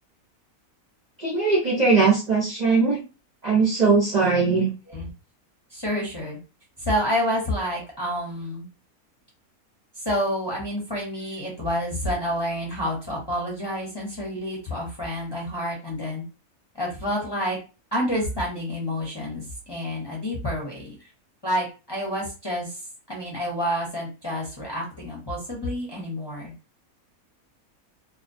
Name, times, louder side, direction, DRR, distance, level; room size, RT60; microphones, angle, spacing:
voice 1, 1.2-3.0 3.4-4.7, right 4 dB, 50° right, -4 dB, 0.5 m, -20 dB
voice 2, 5.7-6.4 6.8-8.7 10.0-16.2 16.7-17.6 17.9-21.1 21.4-22.8 23.1-26.5, equal, 25° left, -3 dB, 0.6 m, -29 dB
2.3 x 2.1 x 2.5 m, 0.30 s
omnidirectional pair, 1.5 m